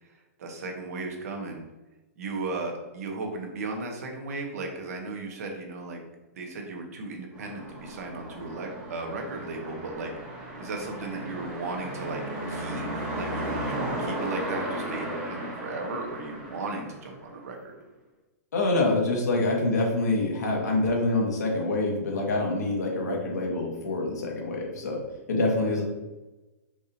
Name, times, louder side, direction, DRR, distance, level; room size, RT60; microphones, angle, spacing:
voice 1, 0.0-1.7 2.2-6.0 6.3-10.1 10.6-12.2 12.5-17.8, right 3 dB, 65° right, 2 dB, 0.9 m, -36 dB
sound 1, 7.3-17.6, right 1 dB, 10° right, 0.9 m, -35 dB
voice 2, 18.5-25.0 25.3-25.8, left 2 dB, 90° left, -1 dB, 1.3 m, -26 dB
4.7 x 2.5 x 2.8 m, 1.1 s
hypercardioid pair, 155°, 9 cm